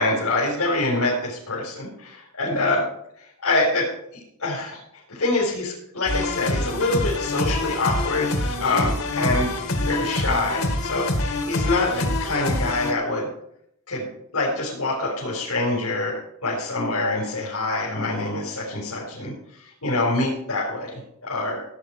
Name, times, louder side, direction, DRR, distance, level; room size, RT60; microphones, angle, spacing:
voice 1, 0.0-2.8 3.4-3.9 4.4-4.8 5.1-8.3 8.6-13.3 13.9-14.1 14.3-21.6, left 2 dB, 90° left, -5 dB, 4.5 m, -25 dB
sound 1, 6.1-12.9, left 2 dB, 70° left, 2.4 m, -26 dB
16.5 x 9.0 x 4.8 m, 0.75 s
head